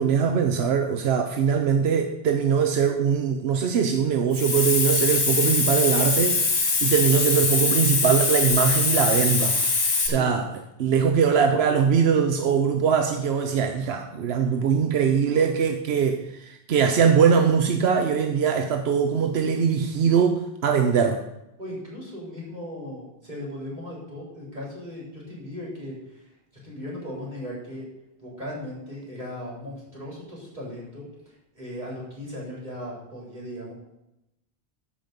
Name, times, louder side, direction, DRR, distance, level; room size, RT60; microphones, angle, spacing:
voice 1, 0.0-10.5 10.8-21.2, right 7 dB, 85° right, 5 dB, 1.0 m, -22 dB
Hiss, 4.3-10.1, left 3 dB, 60° left, 1.6 m, -23 dB
voice 2, 21.6-26.3 26.6-27.9 28.2-33.7, left 1 dB, 45° right, -5 dB, 3.9 m, -37 dB
14.0 x 5.3 x 5.2 m, 0.90 s
omnidirectional pair, 1.0 m